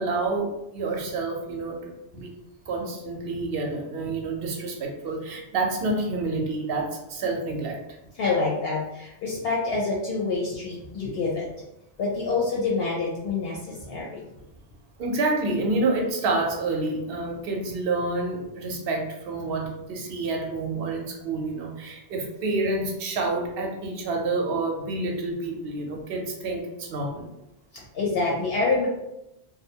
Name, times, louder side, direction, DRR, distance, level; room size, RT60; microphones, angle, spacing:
voice 1, 0.0-2.3 2.7-7.8 13.9-14.0 15.0-27.3, right 3 dB, 65° right, 1 dB, 0.7 m, -28 dB
voice 2, 8.1-11.5 12.0-14.2 27.7-28.9, left 3 dB, 65° left, -3 dB, 0.7 m, -27 dB
2.5 x 2.0 x 2.7 m, 0.87 s
omnidirectional pair, 1.1 m